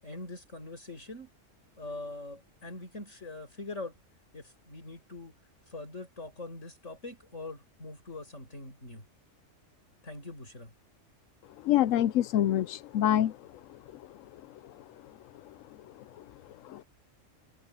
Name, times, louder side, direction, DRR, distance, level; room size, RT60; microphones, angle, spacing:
voice 1, 0.0-1.3 1.8-3.9 4.3-5.3 5.7-9.0 10.0-10.7, left 2 dB, 75° left, 7.1 m, -43 dB
voice 2, 11.6-13.3 16.6-16.8, left 12 dB, 90° left, 1.0 m, -25 dB
omnidirectional pair, 1.3 m